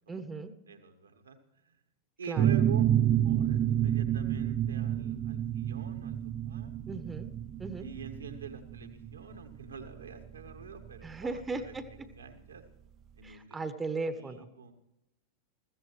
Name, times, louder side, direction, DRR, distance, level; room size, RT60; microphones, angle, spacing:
voice 1, 0.1-0.5 2.3-2.5 6.9-7.3 7.6-7.9 11.0-12.1 13.2-14.5, right 3 dB, 15° right, 11 dB, 1.0 m, -37 dB
voice 2, 0.7-1.4 1.6-1.8 2.2-2.9 3.2-6.2 6.4-6.7 7.8-11.7 12.0-12.6 13.2-13.6 14.1-14.7, right 6 dB, 75° right, 6 dB, 1.6 m, -45 dB
sound 1, 2.4-11.8, right 10 dB, 35° right, 0.6 m, -29 dB
21.0 x 15.0 x 3.1 m, 0.88 s
figure-of-eight pair, 90°, 0 cm